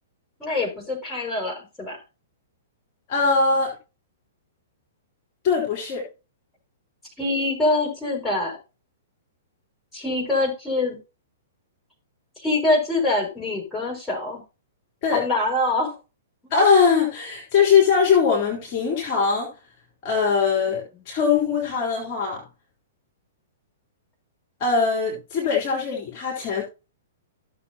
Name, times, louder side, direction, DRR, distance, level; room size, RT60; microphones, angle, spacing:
voice 1, 0.4-2.0 7.2-8.6 9.9-11.0 12.4-14.4 15.1-15.9, left 2 dB, 10° left, 5.8 m, -24 dB
voice 2, 3.1-3.7 5.4-6.1 15.0-15.2 16.5-19.5 20.0-22.4 24.6-26.6, left 5 dB, 35° left, 3.7 m, -21 dB
15.5 x 7.0 x 2.9 m
figure-of-eight pair, 110°, 0 cm